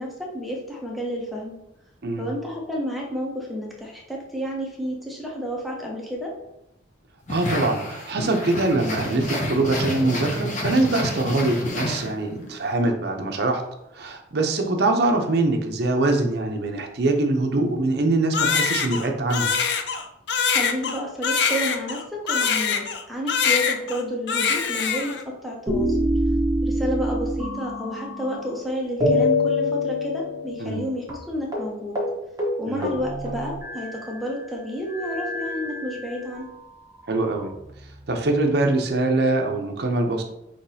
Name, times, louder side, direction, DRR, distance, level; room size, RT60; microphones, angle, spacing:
voice 1, 0.0-1.6 2.2-6.3 20.4-26.0 26.6-32.0 32.6-36.5, equal, ahead, -2 dB, 0.7 m, -31 dB
sound 1, 7.3-12.5, left 1 dB, 40° left, 0.8 m, -29 dB
voice 2, 7.3-13.6 13.9-19.5 30.6-30.8 32.7-32.9 37.1-37.5 38.1-40.2, right 2 dB, 55° right, 4 dB, 0.6 m, -23 dB
Crying sobbing, 18.3-23.0 23.3-24.0 24.3-25.2, left 6 dB, 60° left, 0.4 m, -23 dB
sound 2, 25.7-28.6 29.0-30.8 31.1-31.2 31.5-31.7 32.0-32.1 32.4-34.1 34.9-36.4 37.2-38.1, left 1 dB, 20° right, 1.0 m, -26 dB
5.8 x 3.0 x 2.7 m, 0.86 s
head